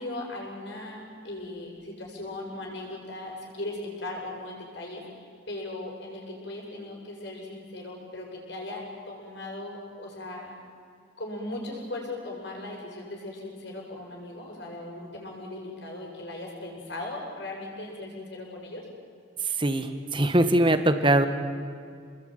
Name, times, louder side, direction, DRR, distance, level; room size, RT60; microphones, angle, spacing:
voice 1, 0.0-10.5 11.2-18.9, left 2 dB, 60° left, -1 dB, 7.5 m, -38 dB
voice 2, 19.4-21.3, right 1 dB, 25° right, 9 dB, 1.7 m, -22 dB
29.5 x 21.0 x 9.4 m, 2.3 s
head